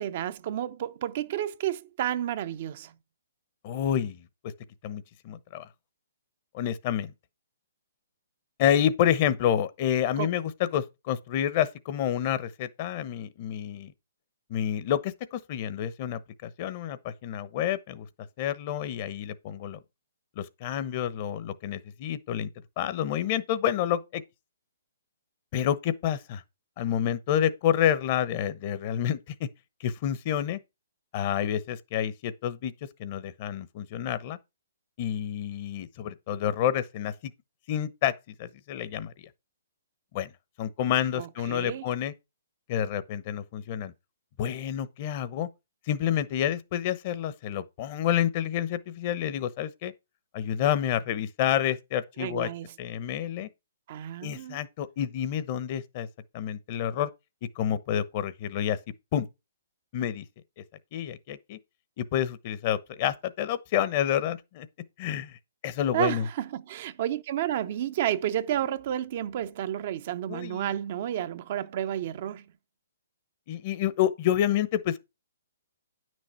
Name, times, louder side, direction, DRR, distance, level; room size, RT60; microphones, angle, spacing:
voice 1, 0.0-2.9 10.2-10.3 41.1-41.9 52.2-52.7 53.9-54.6 65.9-72.5, right 11 dB, 45° right, 0.6 m, -31 dB
voice 2, 3.6-4.2 4.8-5.7 6.5-7.1 8.6-13.9 14.5-18.1 18.4-19.8 20.4-22.5 22.8-24.2 25.5-26.4 26.8-29.5 29.8-30.6 31.1-32.7 33.0-34.4 35.0-37.3 37.7-39.1 40.1-40.3 40.6-42.1 42.7-43.9 44.4-45.5 45.9-49.9 50.3-52.5 52.8-53.5 54.2-56.1 56.3-57.1 57.6-58.8 59.1-59.3 59.9-60.2 60.9-61.6 62.0-64.7 65.0-65.3 65.6-66.2 70.3-70.6 73.5-75.0, left 10 dB, 40° left, 0.9 m, -28 dB
9.7 x 6.3 x 4.4 m
hypercardioid pair, 145°, 0 cm